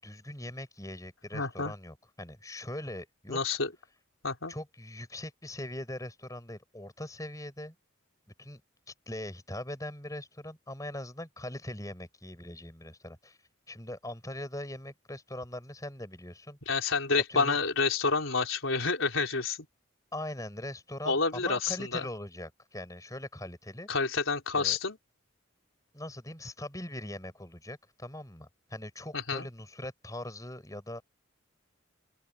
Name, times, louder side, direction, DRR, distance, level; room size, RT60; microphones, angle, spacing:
voice 1, 0.0-3.4 4.5-7.7 8.4-8.6 9.1-13.4 13.7-16.6 17.1-17.6 20.1-23.9 24.5-24.8 25.9-31.0, left 1 dB, 15° left, 5.8 m, -41 dB
voice 2, 1.3-1.7 3.3-3.7 4.2-4.5 16.7-19.6 21.0-22.1 23.9-25.0 29.1-29.5, left 4 dB, 75° left, 4.0 m, -29 dB
open air
head